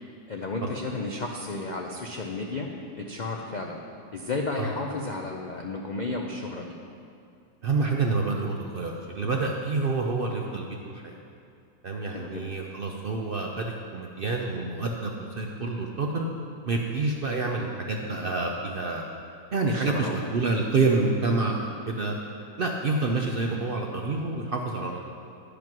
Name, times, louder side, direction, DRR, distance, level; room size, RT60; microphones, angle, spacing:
voice 1, 0.3-2.7 3.0-3.8 4.1-6.7 12.1-12.4 19.7-20.1, left 3 dB, 85° left, 1 dB, 0.4 m, -33 dB
voice 2, 7.6-10.7 10.9-11.2 11.8-16.2 16.6-19.0 19.5-22.1 22.6-25.1, right 3 dB, 60° right, 1 dB, 0.5 m, -28 dB
11.0 x 5.1 x 5.9 m, 2.5 s
omnidirectional pair, 1.6 m